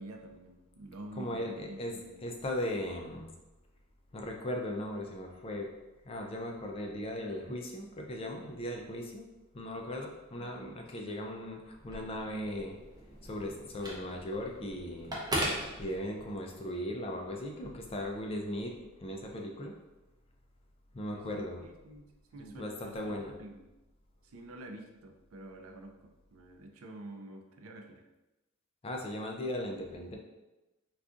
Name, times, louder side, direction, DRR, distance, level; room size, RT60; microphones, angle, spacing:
voice 1, 0.0-2.3 7.5-7.6 10.4-10.5 11.0-11.1 21.1-23.7 24.2-28.0, right 1 dB, 80° right, 3 dB, 0.4 m, -48 dB
voice 2, 1.2-1.9 2.2-3.3 4.1-5.7 6.0-9.3 9.5-12.8 13.2-15.2 15.8-19.7 20.9-21.6 22.4-23.3 28.8-30.2, left 1 dB, 25° left, 1 dB, 0.3 m, -38 dB
Telephone, 11.7-16.5, right 1 dB, 20° right, 0.6 m, -39 dB
2.5 x 2.3 x 3.6 m, 1.0 s
head